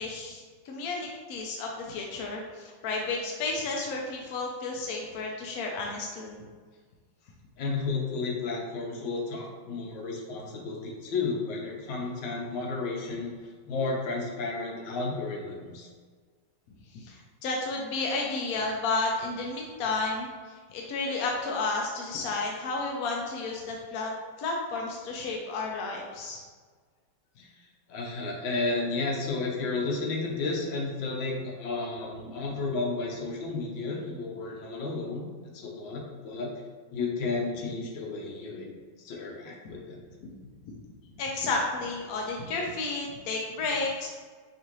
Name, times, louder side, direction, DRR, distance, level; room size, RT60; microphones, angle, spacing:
voice 1, 0.0-6.4 16.9-20.3 20.7-24.1 24.4-26.4 41.2-44.1, left 3 dB, 70° left, 0 dB, 0.8 m, -32 dB
voice 2, 7.6-13.3 13.6-15.9 27.4-27.5 27.9-35.2 35.5-36.5 36.9-38.7 39.0-40.0, left 3 dB, 85° left, -2 dB, 1.5 m, -32 dB
5.4 x 2.5 x 3.0 m, 1.5 s
omnidirectional pair, 2.0 m